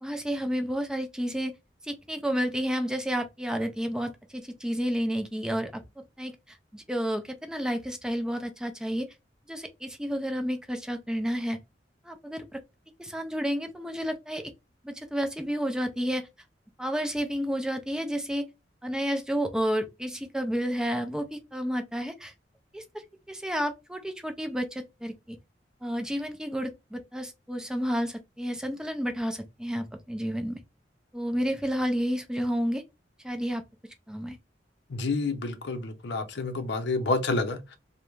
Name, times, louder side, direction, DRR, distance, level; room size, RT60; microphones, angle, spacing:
voice 1, 0.0-1.5 1.8-6.3 6.7-9.1 9.5-11.6 12.0-12.6 13.0-14.5 14.8-16.3 16.8-18.4 18.8-22.3 22.7-22.8 23.3-25.4 25.8-30.6 31.1-32.8 33.2-33.6 34.1-34.4, equal, 5° right, 0.4 m, -31 dB
voice 2, 34.9-37.8, left 3 dB, 65° left, 0.5 m, -29 dB
2.4 x 2.1 x 3.0 m
head